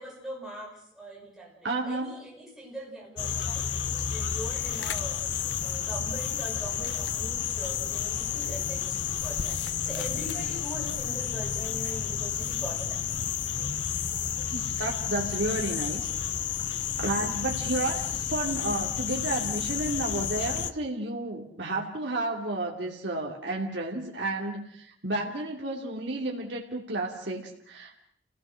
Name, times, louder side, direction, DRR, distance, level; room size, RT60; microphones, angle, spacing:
voice 1, 0.0-5.2 5.6-13.0, right 1 dB, ahead, -4 dB, 6.3 m, -42 dB
voice 2, 1.6-2.2 14.5-16.1 17.0-28.0, right 2 dB, 60° right, -1 dB, 2.7 m, -32 dB
sound 1, 3.2-20.7, left 8 dB, 60° left, 0.8 m, -31 dB
29.0 x 17.5 x 6.5 m, 0.67 s
head